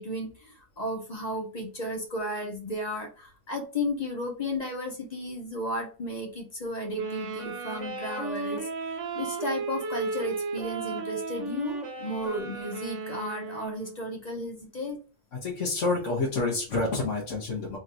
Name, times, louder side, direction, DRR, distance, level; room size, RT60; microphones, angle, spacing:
voice 1, 0.0-8.7 9.1-15.0, left 1 dB, 35° left, 1 dB, 1.0 m, -34 dB
sound 1, 6.9-14.0, right 3 dB, 80° right, 1.2 m, -35 dB
voice 2, 15.3-17.8, left 3 dB, 90° left, -3 dB, 1.4 m, -28 dB
3.7 x 2.6 x 4.3 m, 0.36 s
omnidirectional pair, 1.2 m